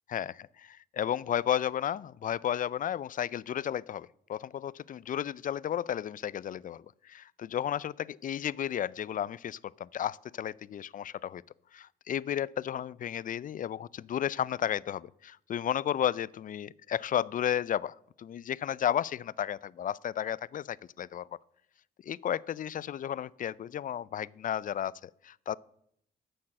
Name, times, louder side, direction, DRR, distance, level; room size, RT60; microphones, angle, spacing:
voice 1, 0.1-11.4 11.7-21.3 22.0-25.6, left 10 dB, 45° left, 0.4 m, -33 dB
9.8 x 6.7 x 7.5 m
cardioid pair, 90°, 20 cm